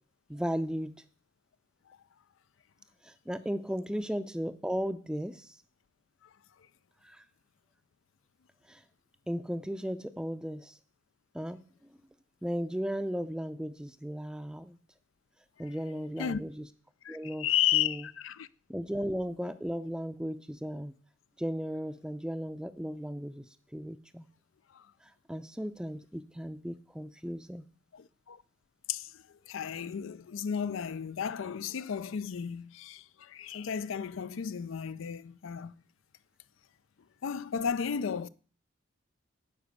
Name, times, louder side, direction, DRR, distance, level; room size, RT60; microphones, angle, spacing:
voice 1, 0.3-1.0 3.0-5.6 7.0-7.2 8.7-8.8 9.3-10.8 11.3-11.6 12.4-14.8 15.6-16.6 17.1-17.5 17.7-18.0 18.7-20.9 21.4-23.5 23.7-24.2 25.3-27.6, equal, 5° right, 0.5 m, -35 dB
voice 2, 17.0-18.5 24.7-24.9 27.9-28.4 28.9-35.7 37.2-38.3, left 9 dB, 75° left, 0.4 m, -33 dB
10.0 x 5.0 x 8.2 m
head